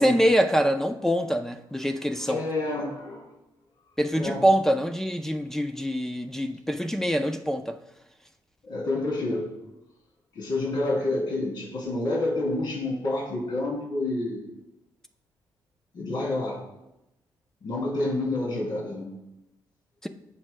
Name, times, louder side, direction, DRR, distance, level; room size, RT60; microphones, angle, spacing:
voice 1, 0.0-2.4 4.0-7.8 20.0-20.1, equal, 5° left, 6 dB, 0.5 m, -24 dB
voice 2, 2.3-3.3 4.1-4.4 8.6-9.5 10.3-14.5 15.9-16.6 17.6-19.1, left 2 dB, 65° left, -3 dB, 2.9 m, -28 dB
15.5 x 6.1 x 2.2 m, 0.90 s
cardioid pair, 100°, 8 cm